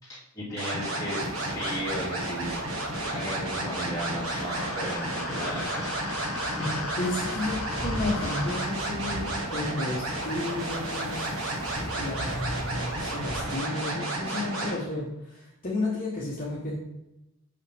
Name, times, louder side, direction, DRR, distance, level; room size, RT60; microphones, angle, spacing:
voice 1, 0.0-2.6 3.0-6.0, equal, 15° left, -8 dB, 2.5 m, -35 dB
sound 1, 0.6-14.8, right 1 dB, 65° right, 1.6 m, -32 dB
sound 2, 1.2-13.5, equal, ahead, 0.7 m, -41 dB
sound 3, 4.2-8.8, left 5 dB, 70° left, 0.6 m, -39 dB
voice 2, 7.0-11.3 12.0-16.8, left 2 dB, 40° left, -6 dB, 1.2 m, -32 dB
6.0 x 5.5 x 3.4 m, 0.88 s
head